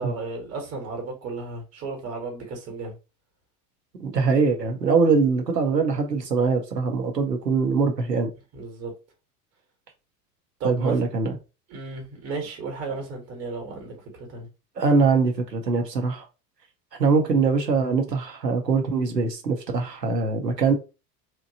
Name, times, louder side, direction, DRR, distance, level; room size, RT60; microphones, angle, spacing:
voice 1, 0.0-3.0 8.5-8.9 10.6-11.1 11.7-14.5, right 3 dB, 30° right, 1.2 m, -34 dB
voice 2, 4.0-8.3 10.6-11.3 12.9-13.0 14.8-16.2 17.0-20.7, right 4 dB, 90° right, 0.9 m, -22 dB
2.9 x 2.2 x 2.7 m
figure-of-eight pair, 80°, 48 cm